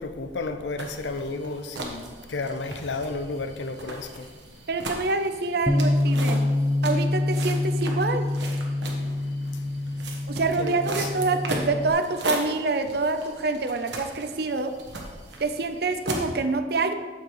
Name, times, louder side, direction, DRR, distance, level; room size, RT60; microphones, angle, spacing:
voice 1, 0.0-4.3 8.8-9.9 10.6-11.3, left 3 dB, 80° left, 0.6 m, -33 dB
Footsteps in Nature, 0.8-16.3, right 2 dB, 85° right, 1.2 m, -37 dB
voice 2, 4.7-6.5 6.8-8.2 10.3-14.7 15.4-16.9, right 3 dB, 60° right, 0.6 m, -26 dB
Bass guitar, 5.7-11.9, left 1 dB, 10° left, 0.3 m, -26 dB
8.0 x 7.3 x 3.1 m
head